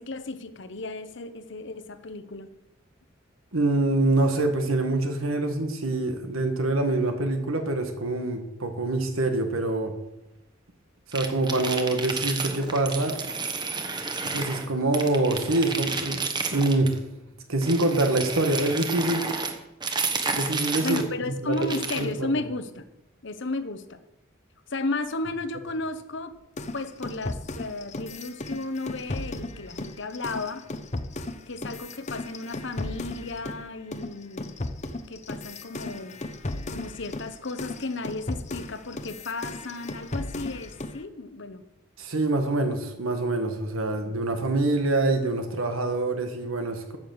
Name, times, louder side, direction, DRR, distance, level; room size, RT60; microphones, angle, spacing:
voice 1, 0.0-2.5 20.8-22.9 23.2-24.0 24.7-26.4 26.7-30.6 31.5-34.5 35.1-36.2 36.7-41.6, left 2 dB, 60° left, 10 dB, 1.0 m, -34 dB
voice 2, 3.5-9.9 11.1-13.2 14.2-16.2 16.5-17.0 17.5-19.3 20.3-21.0 21.4-21.6 21.9-22.3 42.0-47.0, right 2 dB, 85° right, 5 dB, 1.7 m, -25 dB
sound 1, 11.1-14.7 14.9-17.0 17.6-21.1 21.5-22.1, right 4 dB, 20° right, 1.2 m, -31 dB
sound 2, 26.6-33.6 33.9-41.0, left 2 dB, 35° left, 0.8 m, -35 dB
14.0 x 6.9 x 7.9 m, 0.93 s
head